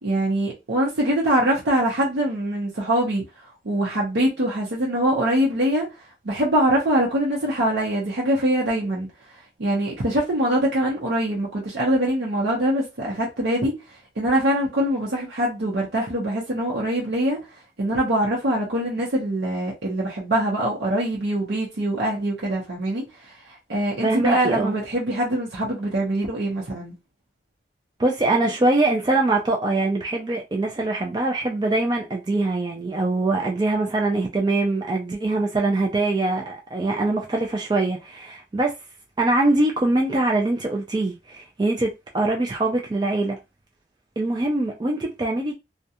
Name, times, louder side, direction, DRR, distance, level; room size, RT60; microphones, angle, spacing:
voice 1, 0.0-3.2 3.6-9.1 9.6-17.4 17.8-26.9, right 1 dB, 80° right, 0.7 m, -23 dB
voice 2, 24.0-24.7 28.0-38.8 39.2-43.4 44.2-45.5, right 2 dB, 25° right, 0.3 m, -23 dB
2.3 x 2.1 x 2.7 m
head